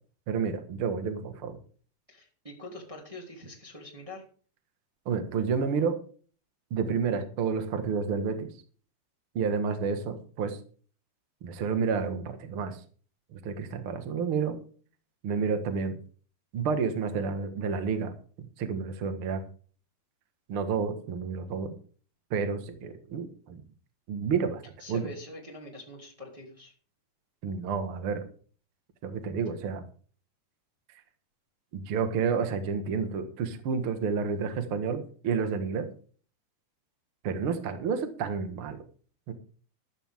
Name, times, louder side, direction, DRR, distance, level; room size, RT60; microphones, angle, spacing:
voice 1, 0.3-1.6 5.0-6.0 6.7-8.5 9.3-10.6 11.4-12.8 13.3-14.6 15.2-16.0 16.5-18.1 18.6-19.4 20.5-21.7 22.3-23.6 24.1-24.6 24.9-25.0 27.4-28.2 29.0-29.8 31.7-35.9 37.2-38.8 39.3-39.4, right 5 dB, 90° right, 8 dB, 1.1 m, -30 dB
voice 2, 2.1-4.2 24.8-26.7, left 1 dB, 10° right, -2 dB, 2.0 m, -44 dB
14.0 x 12.0 x 3.6 m, 0.42 s
omnidirectional pair, 5.1 m